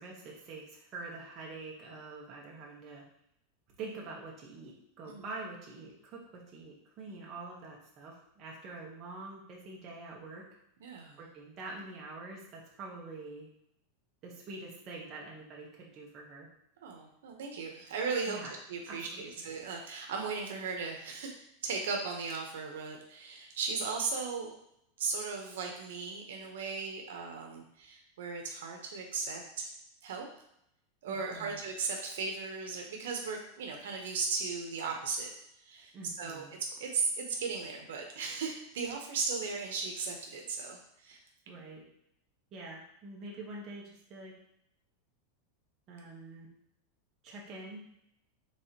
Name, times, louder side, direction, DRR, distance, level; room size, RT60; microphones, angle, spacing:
voice 1, 0.0-3.1 3.8-10.4 11.2-13.5 14.2-16.5 18.3-18.5 18.9-19.2 31.1-31.6 35.9-36.5 41.5-41.8 42.5-44.3 45.9-46.5 47.2-47.8, right 3 dB, 30° right, -3 dB, 1.1 m, -45 dB
voice 2, 10.8-11.2 16.8-21.3 21.6-24.5 25.0-29.7 30.0-30.3 31.0-35.3 35.6-36.5 36.8-41.2, right 4 dB, 85° right, 2 dB, 0.9 m, -36 dB
4.7 x 3.6 x 2.9 m, 0.76 s
supercardioid pair, 160°, 0 cm